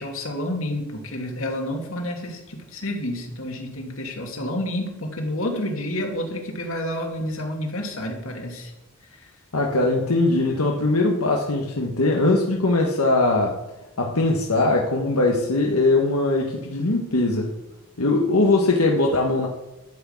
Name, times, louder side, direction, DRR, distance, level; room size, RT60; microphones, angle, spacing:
voice 1, 0.0-8.7 9.1-9.3, left 1 dB, 70° left, 2 dB, 2.6 m, -29 dB
voice 2, 9.5-13.6 14.0-17.5 18.0-19.5, left 2 dB, 90° left, 0 dB, 1.4 m, -21 dB
12.5 x 6.2 x 8.3 m, 0.97 s
head